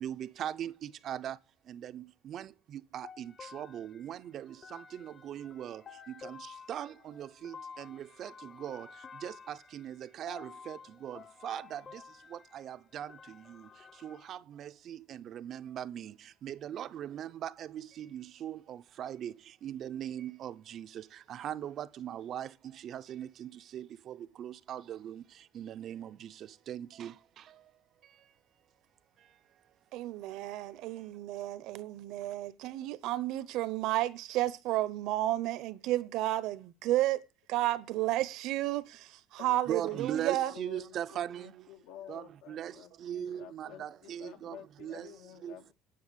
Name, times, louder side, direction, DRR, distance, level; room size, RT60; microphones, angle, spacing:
voice 1, 0.0-1.3 1.7-2.5 2.9-4.5 5.0-5.8 6.2-6.4 6.7-8.3 8.6-8.9 9.2-11.8 12.5-13.1 14.0-15.0 15.3-16.1 16.4-17.7 18.0-19.3 19.6-20.9 21.3-22.5 22.8-25.2 25.6-26.1 26.7-27.1 39.7-41.5 42.1-42.2 42.5-42.7 43.0-44.6 44.8-45.1 45.4-45.5, right 10 dB, 45° right, 0.6 m, -39 dB
sound 1, 3.0-14.3, left 6 dB, 30° left, 0.9 m, -52 dB
voice 2, 29.9-40.5, right 15 dB, 70° right, 0.9 m, -32 dB
voice 3, 40.3-45.7, left 11 dB, 80° left, 1.8 m, -51 dB
10.5 x 6.4 x 7.9 m
cardioid pair, 140°, 0 cm